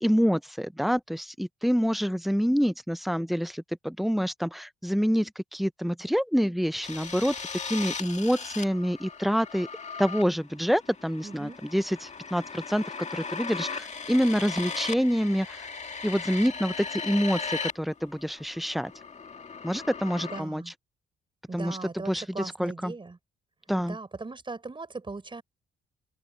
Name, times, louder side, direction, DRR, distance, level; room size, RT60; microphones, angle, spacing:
voice 1, 0.0-7.3 7.6-9.7 10.0-15.7 16.0-18.9 19.6-20.6 21.5-21.8 22.1-22.9 23.7-24.0, equal, ahead, 0.7 m, -27 dB
sound 1, 6.8-17.7 18.0-20.4, left 5 dB, 35° left, 2.0 m, -38 dB
voice 2, 11.2-11.6 20.3-20.7 21.5-23.2 23.8-25.4, right 3 dB, 25° right, 5.7 m, -39 dB
open air
cardioid pair, 90°, 20 cm